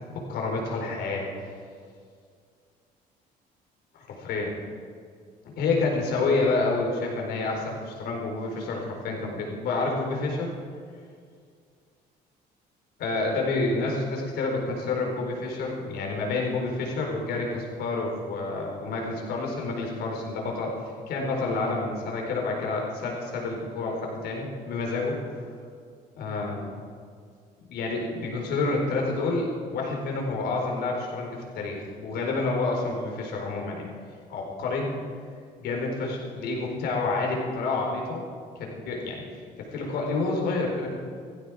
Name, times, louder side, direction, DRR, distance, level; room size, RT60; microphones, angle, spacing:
voice 1, 0.1-1.5 4.1-4.5 5.4-10.5 13.0-20.7 21.1-25.2 26.1-26.7 27.7-33.8 34.3-34.9 35.6-38.2 38.6-39.2 39.6-41.0, left 3 dB, 75° left, 0 dB, 4.2 m, -29 dB
16.5 x 15.0 x 4.8 m, 2.2 s
cardioid pair, 110°, 17 cm